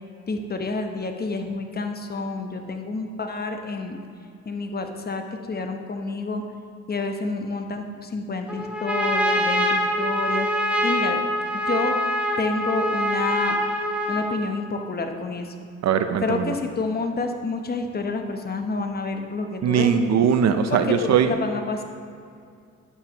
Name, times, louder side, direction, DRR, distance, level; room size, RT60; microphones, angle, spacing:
voice 1, 0.3-4.0 4.4-6.4 6.9-11.2 11.5-11.9 12.4-13.6 14.1-15.5 16.2-20.1 20.7-21.8, left 3 dB, 30° left, 5 dB, 0.9 m, -29 dB
Trumpet, 8.5-14.5, equal, 5° right, 1.0 m, -24 dB
voice 2, 15.8-16.5 19.6-21.3, right 7 dB, 60° right, 9 dB, 0.6 m, -20 dB
10.0 x 9.2 x 3.0 m, 2.3 s
cardioid pair, 90°, 30 cm